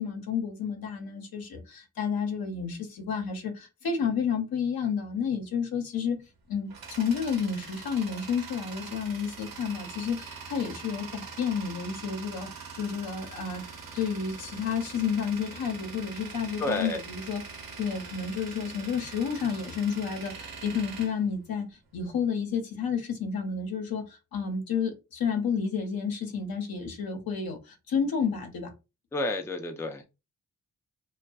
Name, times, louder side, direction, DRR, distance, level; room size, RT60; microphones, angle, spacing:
voice 1, 0.0-6.2 6.5-6.7 7.0-13.6 13.9-17.4 17.8-21.7 21.9-28.7, left 6 dB, 80° left, 0.7 m, -30 dB
Tools, 6.2-22.0, right 5 dB, 75° right, 0.9 m, -43 dB
voice 2, 16.6-17.0 29.1-30.0, left 2 dB, 10° left, 0.4 m, -30 dB
2.5 x 2.2 x 2.3 m
cardioid pair, 75°, 35 cm